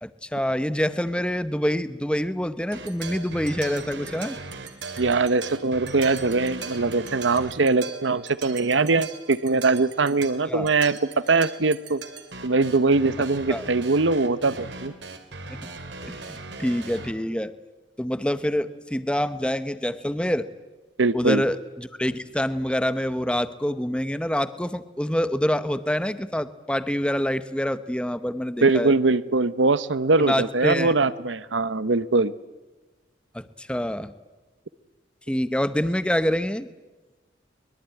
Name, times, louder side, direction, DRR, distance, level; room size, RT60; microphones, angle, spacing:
voice 1, 0.0-4.4 10.5-10.7 13.5-13.6 15.5-15.6 16.0-17.5 18.0-20.5 21.1-28.9 30.2-30.9 33.3-34.1 35.3-36.7, equal, 5° left, 13 dB, 0.9 m, -26 dB
sound 1, 2.7-17.1, right 4 dB, 75° right, 2.5 m, -39 dB
voice 2, 5.0-11.0 11.3-12.0 12.4-14.9 21.0-21.4 28.6-32.3, right 3 dB, 90° right, 16 dB, 0.9 m, -22 dB
23.0 x 21.5 x 9.2 m, 1.2 s
head